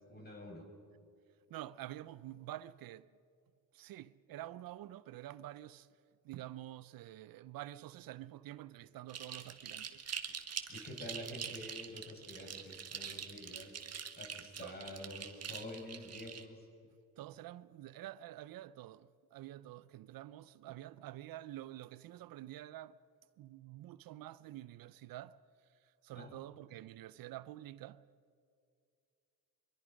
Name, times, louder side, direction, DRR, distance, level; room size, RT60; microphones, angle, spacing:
voice 1, 0.1-0.7 10.7-13.8 14.2-16.7 26.1-26.4, left 1 dB, 25° left, 6.0 m, -48 dB
voice 2, 1.5-3.2 3.7-5.9 6.2-10.0 14.6-14.8 17.2-23.0 23.4-25.4 25.7-28.1, right 14 dB, 75° right, 0.6 m, -48 dB
sound 1, 9.1-16.4, right 7 dB, 45° right, 1.6 m, -45 dB
24.5 x 22.5 x 5.2 m
cardioid pair, 100°, 35 cm